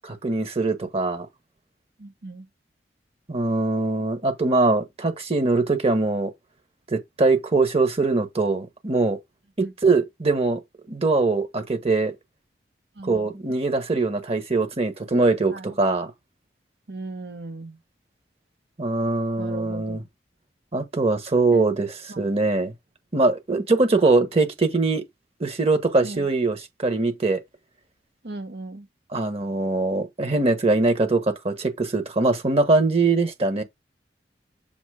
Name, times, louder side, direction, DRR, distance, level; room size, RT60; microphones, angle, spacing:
voice 1, 0.0-1.3 3.3-6.3 6.9-9.2 9.6-10.6 10.9-12.1 13.0-16.1 18.8-20.0 20.7-22.7 23.1-25.0 25.4-27.4 29.1-33.6, right 3 dB, 35° right, 1.3 m, -22 dB
voice 2, 2.0-2.5 9.6-9.7 12.9-13.4 15.5-15.8 16.9-17.8 19.4-20.1 21.5-21.7 22.1-22.4 26.0-26.3 28.2-28.9, right 2 dB, 70° right, 1.3 m, -38 dB
7.2 x 2.9 x 4.9 m
head